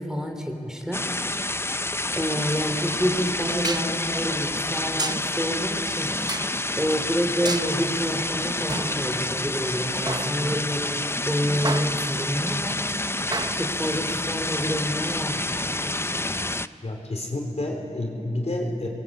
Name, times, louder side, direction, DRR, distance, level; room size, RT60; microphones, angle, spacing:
voice 1, 0.0-1.5 2.1-6.1 6.7-12.8 13.5-15.5, equal, 5° right, 3 dB, 3.3 m, -28 dB
sound 1, 0.9-16.7, left 2 dB, 20° left, 0.6 m, -28 dB
sound 2, 2.5-2.6 3.6-4.0 5.0-5.3 6.3-6.6 7.4-7.7 8.7-9.6 10.1-10.8 11.6-12.3 13.3-13.9, right 2 dB, 30° right, 0.8 m, -32 dB
voice 2, 16.8-18.9, left 1 dB, 55° left, 1 dB, 4.2 m, -29 dB
28.0 x 21.5 x 8.6 m, 2.8 s
wide cardioid pair, 65°, 13 cm